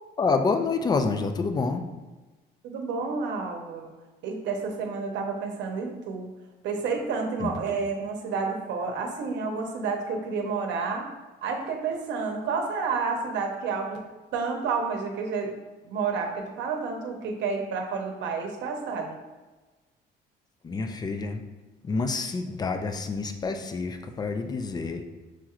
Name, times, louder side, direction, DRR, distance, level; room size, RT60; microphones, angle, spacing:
voice 1, 0.2-1.8 7.4-7.5 20.6-21.4 21.8-25.0, left 4 dB, 20° left, 7 dB, 0.4 m, -28 dB
voice 2, 2.6-3.9 4.2-6.3 6.6-11.1 11.4-14.0 14.3-15.6 15.8-19.2, right 4 dB, 75° right, 2 dB, 0.8 m, -30 dB
6.0 x 3.0 x 2.4 m, 1.2 s
cardioid pair, 125°, 19 cm